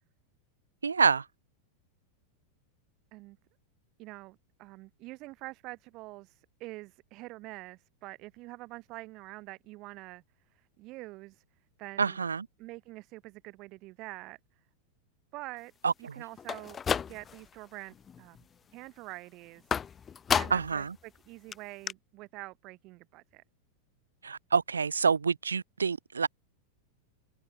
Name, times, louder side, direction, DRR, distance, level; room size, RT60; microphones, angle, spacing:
voice 1, 0.8-1.3 12.0-12.5 15.8-16.2 20.5-20.9 24.2-26.3, right 5 dB, 75° right, 1.1 m, -27 dB
voice 2, 4.0-10.2 10.5-11.4 11.8-12.2 12.6-14.4 15.3-15.7 16.0-16.8 17.1-19.6 20.3-23.4, right 21 dB, 40° right, 3.1 m, -46 dB
sound 1, 16.4-17.5 17.9-18.4 19.7-20.8 21.2-21.3 21.5-21.6 21.9-22.0, left 7 dB, 20° left, 0.4 m, -32 dB
figure-of-eight pair, 90°, 0 cm